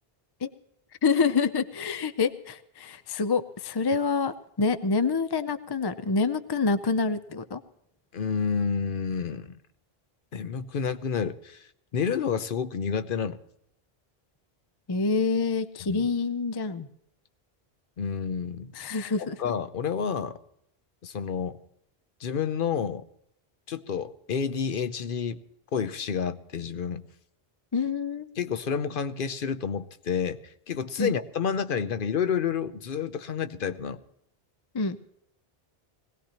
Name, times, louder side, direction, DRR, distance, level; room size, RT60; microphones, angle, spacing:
voice 1, 1.0-7.6 14.9-16.9 18.8-19.4 27.7-28.3 31.0-31.1 34.7-35.0, left 4 dB, 30° left, 12 dB, 0.5 m, -27 dB
voice 2, 8.1-9.6 10.3-13.4 15.9-16.1 18.0-18.7 19.4-20.4 21.0-21.6 22.2-23.0 23.7-25.4 25.7-27.0 28.4-34.0, left 6 dB, 60° left, 11 dB, 0.9 m, -29 dB
21.5 x 17.5 x 2.9 m, 0.76 s
omnidirectional pair, 1.0 m